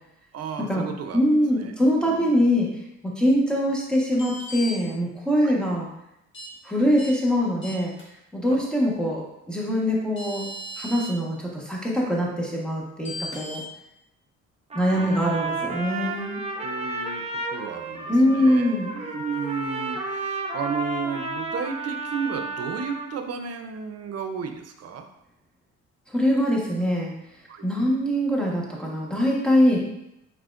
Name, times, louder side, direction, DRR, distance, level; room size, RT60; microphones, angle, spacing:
voice 1, 0.3-1.7 2.1-2.3 5.4-5.5 8.5-8.7 14.9-15.3 15.9-16.2 16.6-17.2 17.5-25.1 27.5-27.7, right 6 dB, 55° right, 6 dB, 0.6 m, -33 dB
voice 2, 1.1-2.7 3.0-5.9 6.6-7.9 8.3-9.2 9.5-10.5 10.8-13.6 14.7-16.4 18.1-18.9 26.1-27.1 27.6-29.8, equal, 5° left, -3 dB, 1.2 m, -23 dB
sound 1, 4.1-4.7 6.3-6.5 7.0-7.1 7.6-8.0 9.7-9.8 10.2-11.1 13.1-13.6, equal, 40° left, 1.4 m, -36 dB
Trumpet, 14.7-23.1, right 2 dB, 20° right, 0.8 m, -32 dB
4.7 x 4.3 x 2.5 m, 0.85 s
cardioid pair, 90°, 30 cm